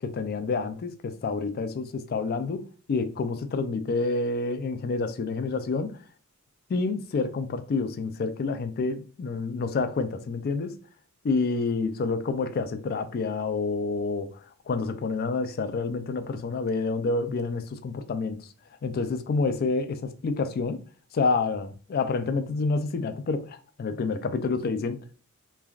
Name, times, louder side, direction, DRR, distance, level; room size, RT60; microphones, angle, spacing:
voice 1, 0.0-6.0 6.7-10.8 11.2-14.4 14.7-18.4 18.8-20.8 21.1-25.2, left 4 dB, 45° left, 0.3 m, -28 dB
3.2 x 2.3 x 2.3 m
head